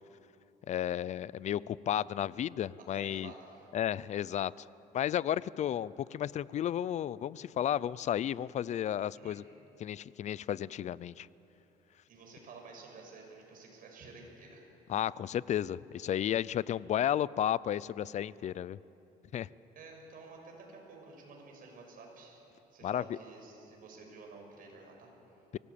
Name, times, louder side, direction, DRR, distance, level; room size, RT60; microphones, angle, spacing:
voice 1, 0.7-3.3 3.7-4.7 4.9-9.4 9.8-11.3 14.9-18.8 19.3-19.5 22.8-23.2, left 10 dB, 45° left, 20 dB, 0.5 m, -33 dB
voice 2, 2.9-3.7 9.2-9.4 12.1-14.6 19.7-22.4 22.7-25.4, right 3 dB, 55° right, 1 dB, 6.5 m, -51 dB
24.0 x 18.0 x 8.6 m, 2.9 s
cardioid pair, 110°, 17 cm